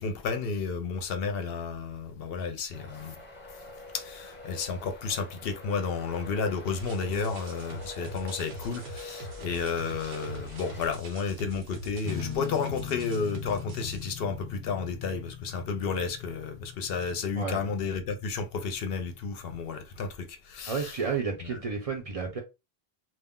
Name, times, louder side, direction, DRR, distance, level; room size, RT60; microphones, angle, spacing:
voice 1, 0.0-3.2 3.9-20.9 21.4-21.6, left 5 dB, 70° left, 0.7 m, -32 dB
Traffic noise roadway noise, 2.7-11.0, left 2 dB, 15° left, 0.7 m, -46 dB
sound 1, 6.7-14.0, right 1 dB, 80° right, 1.0 m, -43 dB
sound 2, 12.0-19.6, left 8 dB, 55° left, 0.3 m, -42 dB
voice 2, 20.7-22.4, right 5 dB, 45° right, 0.6 m, -31 dB
2.3 x 2.1 x 3.5 m
omnidirectional pair, 1.0 m